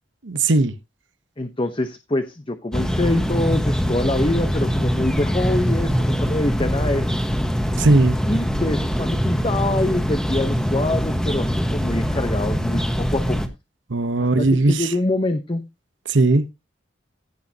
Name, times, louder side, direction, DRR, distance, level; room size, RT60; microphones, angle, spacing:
voice 1, 0.2-0.7 7.8-8.1 13.9-14.9 16.1-16.5, right 2 dB, 90° right, 1.0 m, -18 dB
voice 2, 1.4-7.1 8.3-13.4 14.2-15.6, left 2 dB, 30° left, 0.9 m, -25 dB
sound 1, 2.7-13.5, equal, 5° left, 1.3 m, -23 dB
16.0 x 6.6 x 2.8 m
head